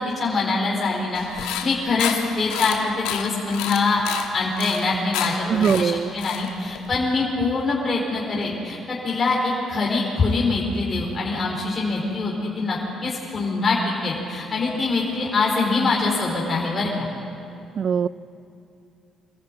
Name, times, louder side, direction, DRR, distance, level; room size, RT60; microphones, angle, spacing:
voice 1, 0.2-4.0 4.3-16.9, left 3 dB, 45° left, -3 dB, 4.2 m, -24 dB
sound 1, 1.1-6.9, left 10 dB, 90° left, 1.3 m, -31 dB
voice 2, 5.5-6.1 17.8-18.1, right 7 dB, 55° right, 20 dB, 0.4 m, -21 dB
24.0 x 14.5 x 8.8 m, 2.8 s
supercardioid pair, 60°, 0 cm